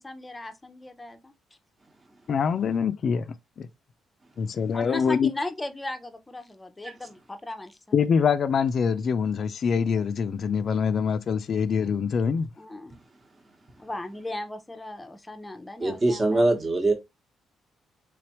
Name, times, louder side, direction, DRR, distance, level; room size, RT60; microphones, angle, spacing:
voice 1, 0.0-1.3 4.7-7.8 12.6-13.0 13.8-16.4, left 2 dB, 15° left, 0.6 m, -37 dB
voice 2, 2.3-3.2 3.6-3.7 4.4-5.3 7.9-12.5, left 6 dB, 55° left, 0.4 m, -24 dB
voice 3, 15.8-16.9, right 2 dB, 30° right, 1.1 m, -23 dB
3.4 x 3.3 x 2.9 m
cardioid pair, 90°, 0 cm